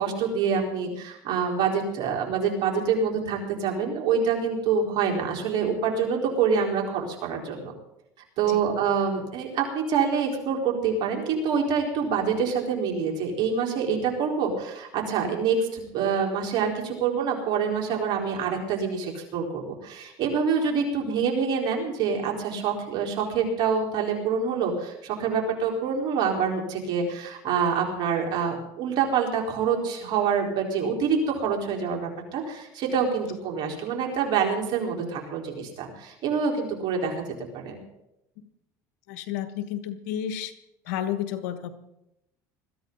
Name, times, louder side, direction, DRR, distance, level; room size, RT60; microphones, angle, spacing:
voice 1, 0.0-7.7 8.4-37.1 37.5-37.8, right 6 dB, 60° right, 0 dB, 4.4 m, -26 dB
voice 2, 39.1-40.5 40.8-41.7, left 10 dB, 90° left, 11 dB, 1.3 m, -31 dB
21.0 x 14.0 x 4.0 m, 0.85 s
supercardioid pair, 105°, 8 cm